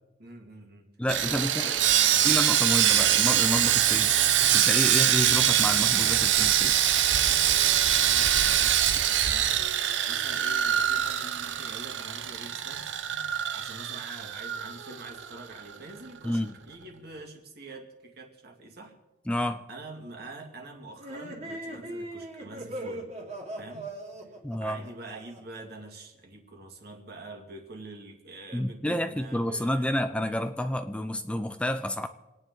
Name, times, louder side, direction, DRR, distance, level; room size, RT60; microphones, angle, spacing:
voice 1, 0.2-0.9 1.3-2.3 7.3-9.7 10.1-13.1 13.5-19.0 19.7-23.0 23.6-23.9 24.6-30.0, right 2 dB, 55° right, 2 dB, 2.2 m, -45 dB
voice 2, 1.0-1.7 2.2-4.2 4.5-6.8 16.2-16.5 19.3-19.6 24.4-24.9 28.5-32.1, left 1 dB, 5° left, 9 dB, 0.5 m, -29 dB
Sawing, 1.1-15.3 15.6-15.8 16.2-16.4, right 10 dB, 75° right, 0.7 m, -24 dB
sound 1, 21.0-25.6, right 1 dB, 35° right, 2.5 m, -39 dB
27.5 x 9.6 x 3.9 m, 1.1 s
head